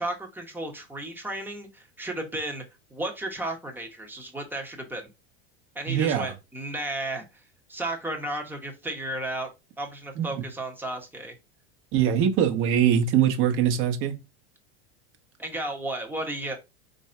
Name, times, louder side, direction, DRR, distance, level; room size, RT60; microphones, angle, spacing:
voice 1, 0.0-2.6 2.9-5.1 5.7-7.2 7.7-9.5 9.8-11.4 15.4-16.6, right 1 dB, 5° right, 0.9 m, -33 dB
voice 2, 5.9-6.3 10.2-10.3 11.9-14.2, right 9 dB, 40° right, 1.0 m, -22 dB
4.6 x 2.6 x 4.3 m
supercardioid pair, 155°, 31 cm